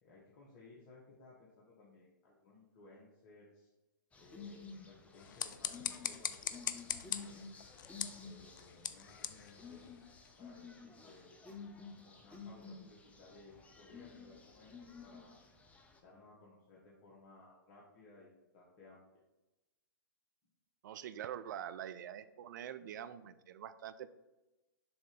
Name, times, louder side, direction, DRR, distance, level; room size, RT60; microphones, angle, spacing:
voice 1, 0.0-3.7 4.2-7.7 8.2-9.8 10.4-11.3 12.0-15.4 16.0-19.0, left 3 dB, 45° left, -5 dB, 1.5 m, -60 dB
sound 1, 4.1-16.0, left 5 dB, 10° left, 0.7 m, -52 dB
sound 2, 5.1-10.4, left 10 dB, 65° left, 0.4 m, -42 dB
voice 2, 20.8-24.1, right 10 dB, 60° right, 13 dB, 0.5 m, -45 dB
6.9 x 2.8 x 5.1 m, 1.0 s
hypercardioid pair, 115°, 11 cm